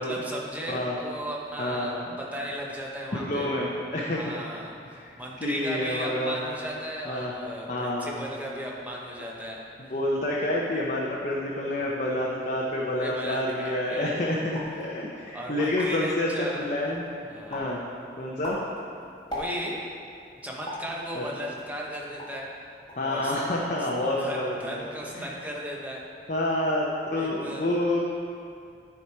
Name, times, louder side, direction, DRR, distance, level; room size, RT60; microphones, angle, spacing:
voice 1, 0.0-3.5 4.1-9.6 13.0-14.1 15.3-16.6 17.3-17.8 19.3-19.9 20.4-22.5 23.0-23.3 24.2-26.0 27.2-27.7, equal, 10° right, -3 dB, 1.0 m, -36 dB
voice 2, 1.6-2.2 3.1-4.3 4.9-5.1 5.4-6.4 7.1-7.3 7.7-8.2 9.8-17.0 17.5-17.8 18.2-18.6 21.1-21.2 23.0-24.9 25.1-25.3 26.3-28.0, left 1 dB, 40° left, -4 dB, 0.8 m, -28 dB
sound 1, 14.5-14.8 15.3-15.4 15.6-16.1 16.6-17.1 17.5-17.8 18.2-19.9 20.7-20.9 21.6-22.5 22.9-23.1 23.4-23.9 24.2-24.7, left 1 dB, 25° left, 1.5 m, -39 dB
10.0 x 4.8 x 4.7 m, 2.4 s
head